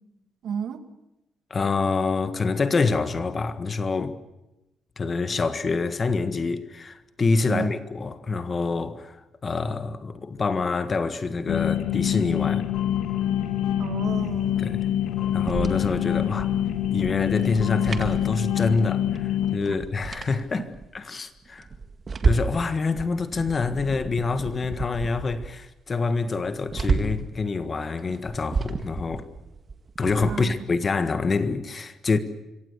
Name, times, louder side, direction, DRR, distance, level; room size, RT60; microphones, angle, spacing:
voice 1, 0.4-0.8 7.4-7.7 13.8-14.6 17.1-17.2 20.6-20.7 30.3-30.5, right 8 dB, 60° right, 2.2 m, -32 dB
voice 2, 1.5-4.2 5.0-9.2 9.4-12.6 14.6-14.8 15.3-16.5 16.9-20.7 20.9-21.7 22.2-29.3 30.0-32.2, left 4 dB, 25° left, 1.6 m, -26 dB
sound 1, 11.5-19.6, left 11 dB, 70° left, 2.5 m, -25 dB
sound 2, 15.2-18.9 19.2-19.3 19.6-20.9 21.4-22.7 23.0-25.6 25.9-26.0 26.3-27.3 28.0-30.5, right 4 dB, 30° right, 2.0 m, -31 dB
26.5 x 24.0 x 6.8 m
cardioid pair, 165°, 0 cm